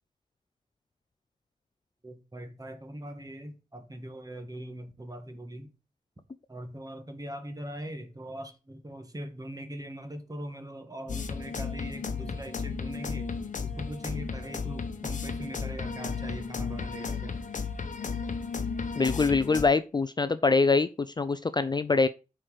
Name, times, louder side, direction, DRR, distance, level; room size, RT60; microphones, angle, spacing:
voice 1, 2.0-5.7 6.5-13.3 13.6-17.4, right 1 dB, 25° right, 1.7 m, -41 dB
sound 1, 11.1-19.6, left 5 dB, 55° left, 1.0 m, -34 dB
voice 2, 19.0-22.1, left 4 dB, 30° left, 0.5 m, -24 dB
7.6 x 4.6 x 4.8 m
cardioid pair, 60°, 15 cm